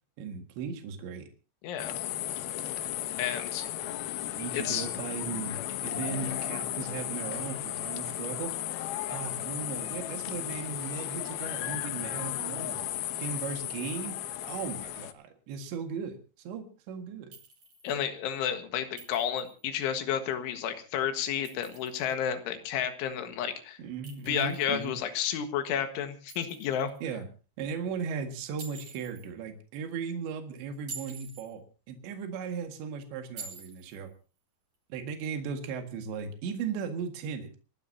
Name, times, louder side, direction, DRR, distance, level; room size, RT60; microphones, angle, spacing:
voice 1, 0.2-1.3 4.4-8.5 9.1-12.8 13.2-14.2 14.5-17.3 23.8-25.0 27.0-27.3 27.6-34.1 34.9-37.6, right 6 dB, 75° right, 4 dB, 4.1 m, -37 dB
voice 2, 1.6-2.0 3.2-3.7 4.5-4.9 17.8-23.8 24.3-26.9, left 9 dB, 90° left, 7 dB, 4.0 m, -31 dB
sound 1, 1.8-15.1, left 12 dB, 70° left, 2.5 m, -35 dB
Chink clink, 17.3-17.9 19.0-19.6 21.2-22.1 24.0-24.9 26.3-27.0 28.6-29.3 30.7-31.5 33.4-34.0, right 4 dB, 35° right, 4.3 m, -47 dB
29.0 x 12.0 x 2.8 m, 0.36 s
omnidirectional pair, 5.3 m